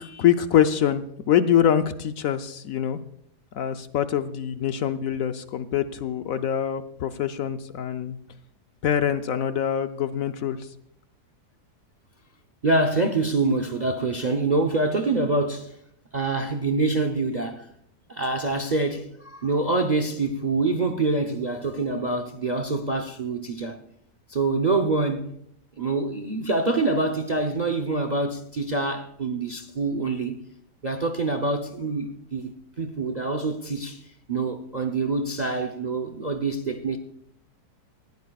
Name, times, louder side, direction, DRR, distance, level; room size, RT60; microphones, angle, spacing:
voice 1, 0.0-3.0 3.5-8.2 8.8-10.7, left 9 dB, 65° left, 0.9 m, -24 dB
voice 2, 12.6-15.8 16.1-17.7 18.1-23.8 24.3-25.3 25.8-30.4 30.8-32.5 32.8-37.0, right 3 dB, 45° right, 0.6 m, -25 dB
19.0 x 16.0 x 2.3 m
omnidirectional pair, 1.8 m